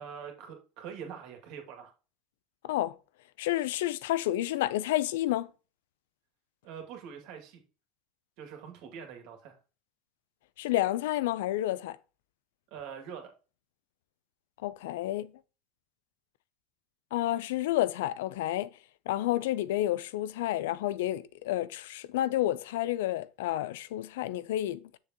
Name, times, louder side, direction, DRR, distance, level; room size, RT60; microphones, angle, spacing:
voice 1, 0.0-1.9 6.6-7.6 8.4-9.6 12.7-13.3, right 7 dB, 70° right, 2.2 m, -44 dB
voice 2, 2.6-2.9 3.4-5.5 10.6-12.0 14.6-15.3 17.1-18.7 19.1-25.0, left 14 dB, 80° left, 0.4 m, -30 dB
7.3 x 6.8 x 2.9 m
supercardioid pair, 95°, 0 cm